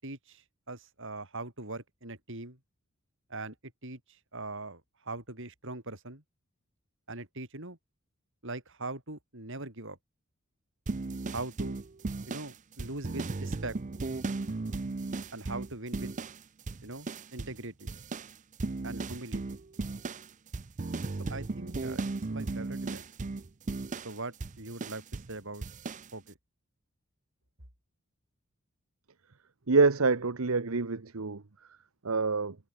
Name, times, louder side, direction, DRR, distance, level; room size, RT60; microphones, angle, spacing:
voice 1, 0.0-2.6 3.3-6.2 7.1-7.8 8.4-10.0 11.3-11.8 12.3-13.8 15.3-16.1 16.8-17.9 18.8-19.6 21.3-22.0 22.3-23.1 24.0-25.6 26.1-26.4, right 2 dB, 65° right, 8.0 m, -41 dB
sound 1, 10.9-16.4 16.7-17.6 17.9-25.3 25.6-26.1, right 3 dB, 35° right, 0.6 m, -36 dB
voice 2, 29.7-31.4 32.0-32.6, right 4 dB, 85° right, 1.1 m, -26 dB
head